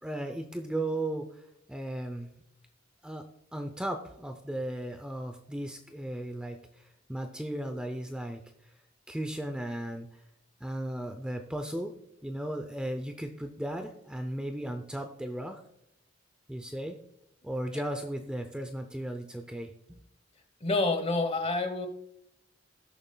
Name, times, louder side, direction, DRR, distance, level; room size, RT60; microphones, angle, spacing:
voice 1, 0.0-2.3 3.0-3.2 3.5-8.7 9.1-10.1 10.6-11.9 12.2-15.6 16.5-17.0 17.4-20.0, right 1 dB, 5° right, 5 dB, 0.5 m, -36 dB
voice 2, 20.6-21.9, left 2 dB, 35° left, 7 dB, 1.1 m, -28 dB
18.0 x 7.1 x 2.2 m, 0.80 s
head